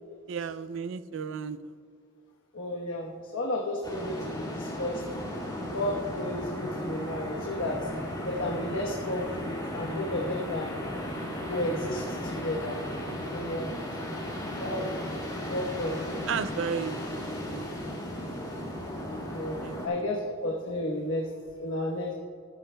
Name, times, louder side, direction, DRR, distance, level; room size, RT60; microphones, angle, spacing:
voice 1, 0.3-1.7 16.3-18.0 19.6-19.8, right 6 dB, 65° right, 15 dB, 0.4 m, -34 dB
voice 2, 2.5-5.0 5.6-7.9 8.2-10.7 11.5-12.8 13.3-13.7 14.5-15.1 15.5-16.1 19.3-21.3 21.6-22.1, left 1 dB, 75° left, -2 dB, 1.1 m, -32 dB
sound 1, 3.8-19.9, equal, 20° left, 2.6 m, -35 dB
14.5 x 12.0 x 2.2 m, 2.2 s
head